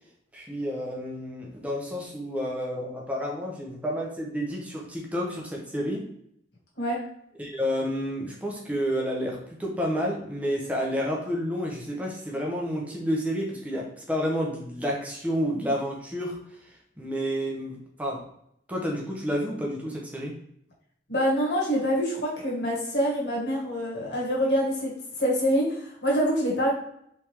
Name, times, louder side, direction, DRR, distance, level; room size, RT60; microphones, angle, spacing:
voice 1, 0.3-6.1 7.4-18.2 18.7-20.4, equal, 5° right, -2 dB, 0.7 m, -30 dB
voice 2, 21.1-26.7, equal, 60° left, -5 dB, 1.4 m, -26 dB
3.5 x 3.3 x 3.0 m, 0.72 s
head